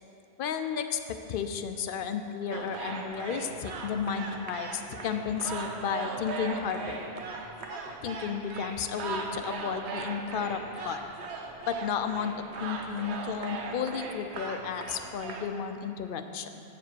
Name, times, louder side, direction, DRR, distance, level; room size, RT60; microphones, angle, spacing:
voice 1, 0.4-1.0 1.3-7.0 7.7-11.0 11.6-16.6, left 7 dB, 60° left, 8 dB, 0.6 m, -33 dB
sound 1, 2.5-15.5, right 4 dB, 80° right, 1.0 m, -38 dB
7.9 x 5.1 x 6.8 m, 2.8 s
omnidirectional pair, 1.1 m